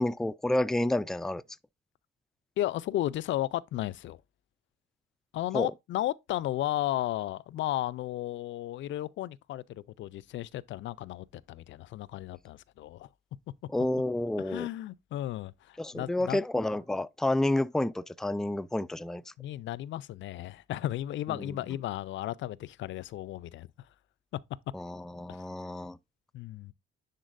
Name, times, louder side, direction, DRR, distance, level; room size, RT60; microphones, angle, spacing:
voice 1, 0.0-1.4 5.5-5.7 13.7-14.7 15.8-19.2 21.4-21.6 24.7-26.0, left 1 dB, ahead, 0.3 m, -30 dB
voice 2, 2.6-4.2 5.3-13.1 14.4-16.4 19.4-23.7 25.3-25.4 26.3-26.7, left 14 dB, 70° left, 0.5 m, -34 dB
10.5 x 4.0 x 2.5 m
cardioid pair, 90°, 20 cm